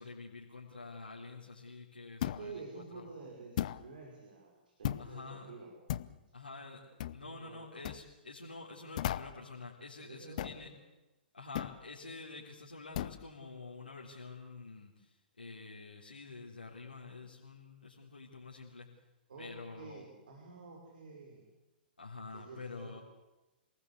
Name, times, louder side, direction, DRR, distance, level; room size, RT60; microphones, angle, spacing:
voice 1, 0.0-3.1 5.0-5.5 6.3-10.7 11.3-18.9 19.4-20.1 22.0-23.0, left 3 dB, 75° left, -4 dB, 3.7 m, -48 dB
sound 1, 2.2-2.5 3.6-3.9 4.8-5.1 5.9-6.2 7.0-7.2 7.8-8.0 9.0-9.4 10.4-10.6 11.5-11.8 12.9-13.2, left 12 dB, 45° left, 0.8 m, -36 dB
voice 2, 2.3-4.5 4.8-5.7 7.2-7.9 10.0-10.7 19.3-21.5 22.3-23.0, right 4 dB, 60° right, 1 dB, 5.9 m, -50 dB
27.0 x 19.5 x 8.3 m, 1.0 s
figure-of-eight pair, 115°, 5 cm